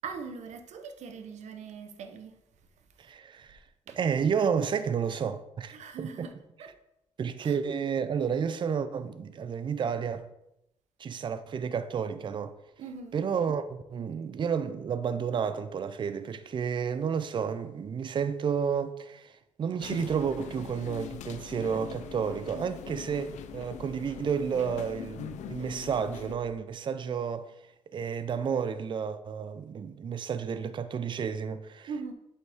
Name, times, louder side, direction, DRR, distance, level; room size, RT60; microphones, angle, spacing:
voice 1, 0.0-2.4 3.9-4.0 5.7-6.3 6.6-6.8 7.4-7.6 12.8-13.2 24.6-24.7 31.9-32.1, right 5 dB, 75° right, 0.8 m, -41 dB
voice 2, 3.0-3.6 4.0-6.3 7.2-10.2 11.0-12.5 13.1-27.5 27.9-32.1, right 7 dB, 40° right, 0.5 m, -31 dB
sound 1, 19.8-26.4, left 10 dB, 80° left, 0.5 m, -42 dB
sound 2, 20.0-26.5, right 4 dB, 10° right, 2.6 m, -53 dB
7.8 x 5.5 x 3.5 m
cardioid pair, 100°, 12 cm